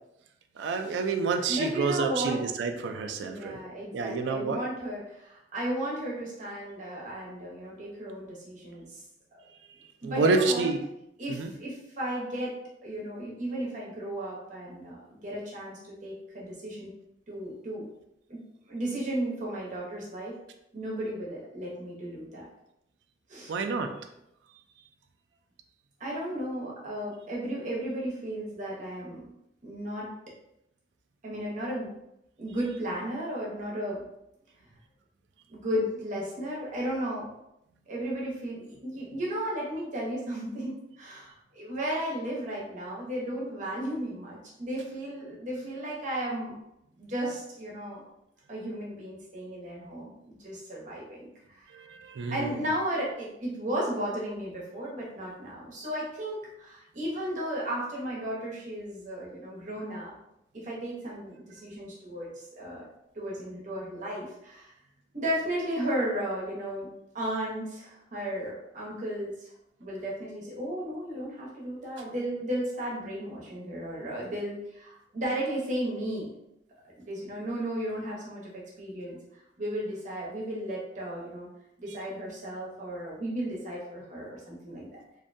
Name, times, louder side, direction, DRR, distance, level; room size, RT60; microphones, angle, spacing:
voice 1, 0.6-3.6 3.9-4.6 10.0-10.8 11.3-11.5 23.5-23.9 51.7-52.7, right 4 dB, 90° right, 6 dB, 0.3 m, -28 dB
voice 2, 1.5-2.4 3.2-9.0 10.0-10.7 11.2-12.5 12.8-16.9 17.3-17.9 18.3-18.4 18.7-20.4 20.7-22.5 23.3-23.5 26.0-29.2 29.6-30.1 31.2-31.9 32.4-34.0 35.5-37.3 37.9-46.6 47.0-48.0 48.5-51.6 52.3-60.1 60.5-62.9 63.1-64.7 65.1-66.9 67.1-69.5 69.8-76.3 77.1-79.2 79.6-81.5 81.8-85.0, right 1 dB, 45° right, -4 dB, 0.8 m, -34 dB
2.6 x 2.2 x 2.5 m, 0.81 s
head